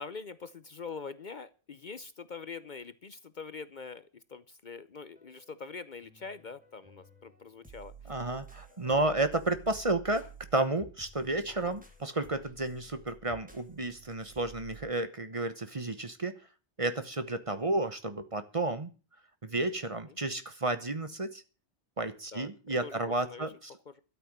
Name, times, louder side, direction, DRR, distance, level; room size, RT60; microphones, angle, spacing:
voice 1, 0.0-8.2 8.7-9.1 11.5-11.7 20.1-20.2 22.3-22.5 22.8-23.4 23.9-24.0, left 5 dB, 50° left, 14 dB, 0.8 m, -44 dB
sound 1, 5.1-5.7 6.0-14.9, right 4 dB, 5° right, 2.4 m, -53 dB
voice 2, 8.1-10.2 10.5-16.3 16.8-18.9 19.4-21.4 22.0-23.7, right 2 dB, 30° right, 11 dB, 1.1 m, -32 dB
13.0 x 8.2 x 7.4 m, 0.35 s
omnidirectional pair, 1.1 m